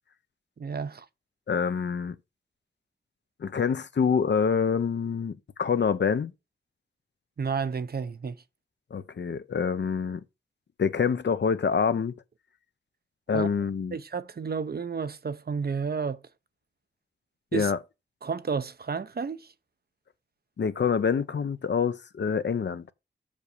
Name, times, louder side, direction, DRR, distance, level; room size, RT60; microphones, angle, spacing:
voice 1, 0.6-1.1 7.4-8.4 13.3-13.5 13.9-16.2 17.5-17.7 18.2-19.5, right 5 dB, 55° right, 0.8 m, -31 dB
voice 2, 1.5-2.2 3.4-6.3 8.9-10.2 10.8-12.1 13.3-14.0 17.5-17.8 20.6-22.9, left 6 dB, 70° left, 0.8 m, -26 dB
6.3 x 5.3 x 6.7 m
cardioid pair, 55°, 19 cm